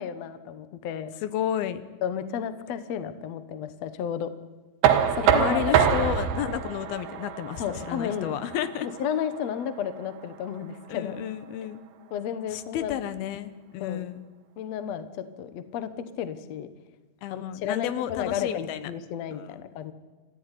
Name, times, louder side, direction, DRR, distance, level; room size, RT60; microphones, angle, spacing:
voice 1, 0.0-1.1 2.0-4.3 5.1-6.1 7.6-8.3 8.8-11.2 12.1-13.0 13.8-14.1 14.6-16.7 17.3-19.9, left 9 dB, 60° left, 11 dB, 1.9 m, -32 dB
voice 2, 1.2-1.8 5.2-8.9 10.9-11.8 12.5-14.3 17.2-18.9 19.3-19.6, left 11 dB, 80° left, 12 dB, 3.0 m, -32 dB
Knock, 4.8-10.6, right 8 dB, 80° right, 3.3 m, -26 dB
28.5 x 14.5 x 9.9 m, 1.2 s
omnidirectional pair, 4.3 m